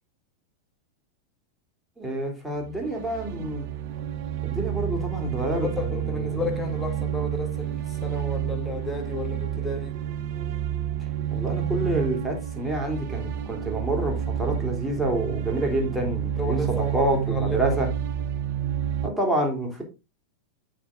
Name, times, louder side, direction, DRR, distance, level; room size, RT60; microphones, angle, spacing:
voice 1, 2.0-3.7 4.4-6.5 11.3-17.9 19.0-19.8, right 1 dB, 5° right, 3.3 m, -28 dB
sound 1, 2.6-19.1, right 10 dB, 45° right, 0.8 m, -29 dB
voice 2, 5.5-10.0 16.4-17.8, left 2 dB, 15° left, 2.2 m, -33 dB
9.0 x 6.5 x 3.7 m
figure-of-eight pair, 90°, 0 cm